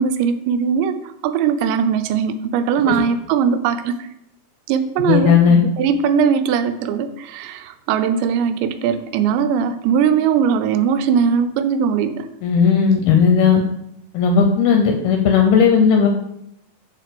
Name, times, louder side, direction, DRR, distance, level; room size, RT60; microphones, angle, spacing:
voice 1, 0.0-4.1 4.7-5.4 5.8-12.3, right 7 dB, 85° right, 10 dB, 2.8 m, -20 dB
voice 2, 5.1-5.6 12.4-13.6 14.1-16.1, left 6 dB, 80° left, 3 dB, 2.3 m, -15 dB
6.2 x 4.6 x 6.6 m, 0.79 s
omnidirectional pair, 5.1 m